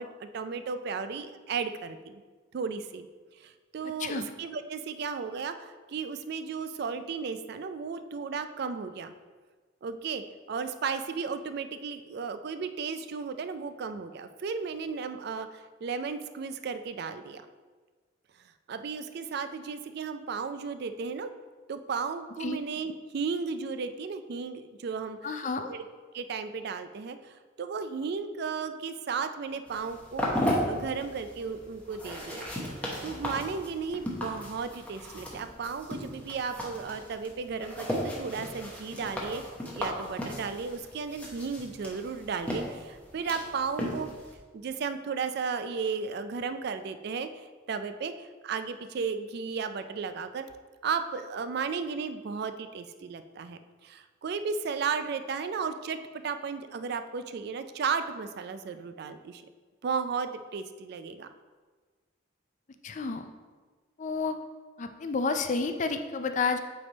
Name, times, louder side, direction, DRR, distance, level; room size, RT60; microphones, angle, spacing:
voice 1, 0.0-2.1 2.5-3.1 3.4-9.1 9.8-10.2 10.5-17.4 18.7-21.3 21.7-25.8 26.1-32.5 33.0-39.4 39.7-44.1 44.5-50.5 50.8-59.4 59.8-61.3, right 5 dB, 55° right, 10 dB, 0.3 m, -34 dB
voice 2, 3.8-4.3 22.4-22.6 25.2-25.7 62.8-63.3 64.0-64.4 64.8-66.6, left 4 dB, 40° left, 8 dB, 0.4 m, -30 dB
sound 1, 29.7-44.4, equal, 5° left, 0.9 m, -36 dB
8.5 x 3.4 x 4.0 m, 1.4 s
head